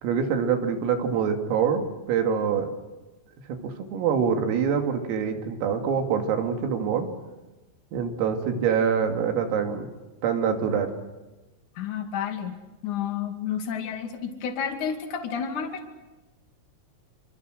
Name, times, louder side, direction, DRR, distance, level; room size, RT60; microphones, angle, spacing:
voice 1, 0.0-2.7 3.5-7.1 7.9-9.9 10.2-10.9, right 7 dB, 90° right, 4 dB, 5.1 m, -25 dB
voice 2, 11.7-12.6 12.8-15.8, left 7 dB, 45° left, 4 dB, 3.2 m, -30 dB
26.5 x 26.5 x 6.5 m, 1.1 s
omnidirectional pair, 5.9 m